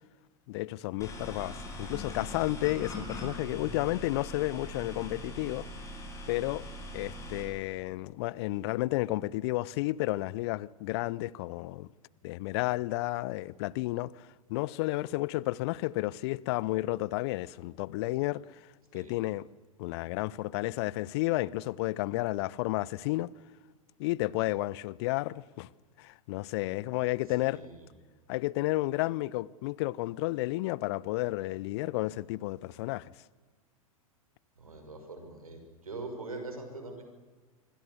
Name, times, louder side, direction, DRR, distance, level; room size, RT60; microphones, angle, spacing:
voice 1, 0.5-5.7 6.3-6.6 6.9-11.9 12.2-18.6 18.9-19.5 19.8-23.3 24.0-25.7 26.0-27.6 28.3-33.1, left 19 dB, 50° left, 0.7 m, -32 dB
sound 1, 1.0-7.4, left 1 dB, 15° left, 7.4 m, -41 dB
voice 2, 27.4-27.7 34.6-37.0, right 2 dB, 80° right, 6.2 m, -42 dB
26.0 x 25.0 x 7.1 m
figure-of-eight pair, 95°, 18 cm